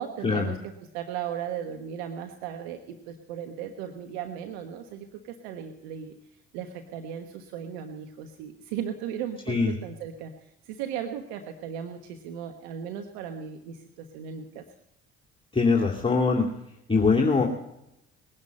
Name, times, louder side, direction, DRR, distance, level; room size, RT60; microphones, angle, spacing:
voice 1, 0.0-6.1 6.5-14.6, right 8 dB, 85° right, 6 dB, 1.3 m, -36 dB
voice 2, 15.5-16.5 16.9-17.5, left 4 dB, 15° left, -2 dB, 2.6 m, -22 dB
21.0 x 11.0 x 5.4 m, 0.84 s
hypercardioid pair, 65°, 31 cm